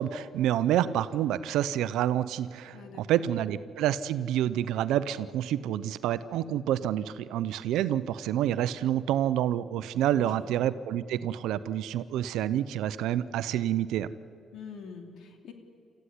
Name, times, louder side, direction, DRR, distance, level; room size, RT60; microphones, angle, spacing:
voice 1, 0.0-14.1, right 11 dB, 90° right, 14 dB, 0.7 m, -28 dB
voice 2, 2.7-3.5 10.1-10.7 14.5-15.5, left 6 dB, 75° left, 5 dB, 2.9 m, -46 dB
27.5 x 14.5 x 10.0 m, 2.5 s
cardioid pair, 90°, 0 cm